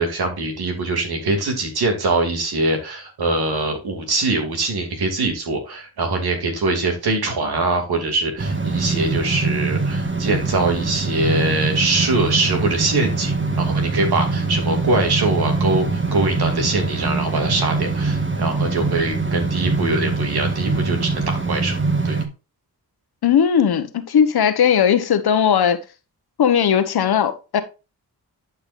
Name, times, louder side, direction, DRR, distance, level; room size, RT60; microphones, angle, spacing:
voice 1, 0.0-21.8 22.0-22.2, right 2 dB, 85° right, 3 dB, 2.6 m, -23 dB
sound 1, 8.4-22.3, right 3 dB, 30° right, 1.6 m, -23 dB
voice 2, 23.2-25.8 26.4-27.6, left 8 dB, 85° left, 10 dB, 1.1 m, -17 dB
11.5 x 5.5 x 2.5 m, 0.30 s
cardioid pair, 50°, 37 cm